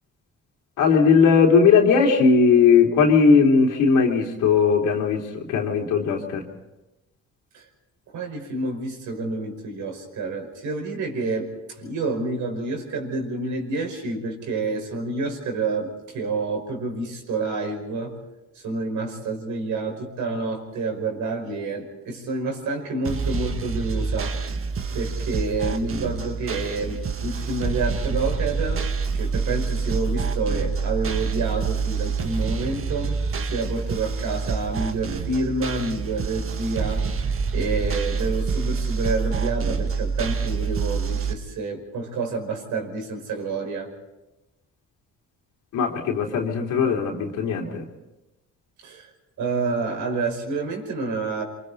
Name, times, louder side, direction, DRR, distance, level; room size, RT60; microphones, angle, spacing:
voice 1, 0.8-5.2 5.5-6.4 45.7-47.9, left 5 dB, 85° left, 0 dB, 3.7 m, -18 dB
voice 2, 8.1-11.5 11.8-18.2 18.6-24.5 24.9-28.9 29.1-33.2 33.4-43.9 48.8-49.1 49.4-51.4, right 3 dB, 80° right, 2 dB, 5.4 m, -28 dB
sound 1, 23.0-41.3, right 5 dB, 45° right, 1.5 m, -27 dB
28.5 x 24.0 x 4.3 m, 0.98 s
cardioid pair, 90°, 30 cm